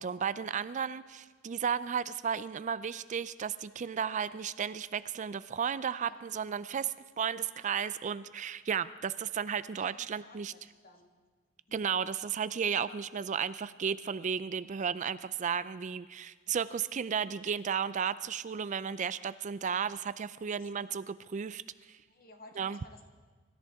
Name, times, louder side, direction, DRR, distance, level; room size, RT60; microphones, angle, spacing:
voice 1, 0.0-10.5 11.7-21.6 21.9-22.0 22.6-22.8, right 7 dB, 40° right, 15 dB, 0.4 m, -34 dB
voice 2, 6.0-6.4 9.8-11.1 16.5-16.6 20.5-20.9 22.1-23.0, left 2 dB, 50° left, 3 dB, 1.8 m, -57 dB
25.5 x 14.0 x 3.5 m, 1.4 s
head